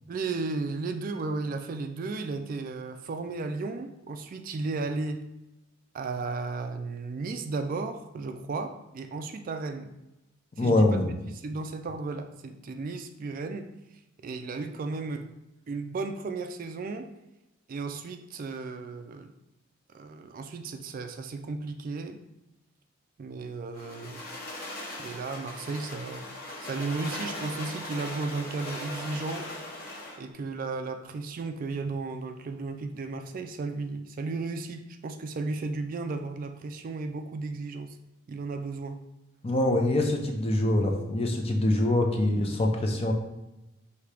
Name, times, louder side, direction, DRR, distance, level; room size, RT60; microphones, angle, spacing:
voice 1, 0.1-5.3 5.9-9.9 10.6-13.7 14.2-15.3 15.7-17.1 17.7-19.3 19.9-22.2 23.2-24.2 25.0-26.2 26.6-29.5 30.2-38.0 38.3-39.0, right 3 dB, 45° right, 7 dB, 0.3 m, -34 dB
voice 2, 10.6-11.2 39.4-43.1, left 1 dB, 30° left, 2 dB, 0.6 m, -24 dB
sound 1, 23.7-30.2, left 1 dB, 45° left, 1.0 m, -39 dB
4.8 x 2.8 x 3.3 m, 0.94 s
head